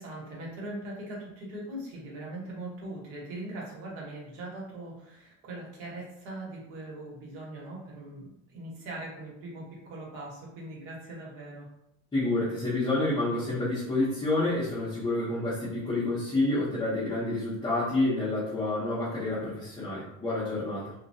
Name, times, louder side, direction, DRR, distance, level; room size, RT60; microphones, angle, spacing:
voice 1, 0.0-11.7, right 1 dB, 80° right, -4 dB, 1.1 m, -41 dB
voice 2, 12.1-20.9, left 2 dB, 10° left, -11 dB, 0.6 m, -28 dB
2.3 x 2.1 x 2.6 m, 0.84 s
cardioid pair, 140°, 39 cm